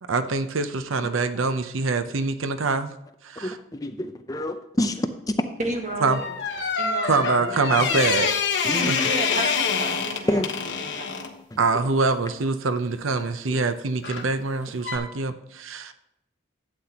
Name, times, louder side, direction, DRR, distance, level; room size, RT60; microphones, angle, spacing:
voice 1, 0.1-2.9 3.2-3.6 6.0-6.2 7.1-8.3 8.9-9.0 11.6-15.9, right 3 dB, 85° right, 10 dB, 0.7 m, -24 dB
voice 2, 3.4-5.1 7.8-8.0 8.6-8.9 10.3-10.5 11.5-11.6 13.5-13.6, left 1 dB, 20° left, 7 dB, 0.5 m, -27 dB
voice 3, 5.6-6.3 6.8-7.9 8.7-10.4 10.8-11.1, right 1 dB, 35° right, 3 dB, 1.6 m, -32 dB
sound 1, 6.1-11.3 14.0-14.3 14.8-15.0, left 5 dB, 60° left, 1.2 m, -26 dB
12.0 x 8.5 x 2.9 m, 0.85 s
head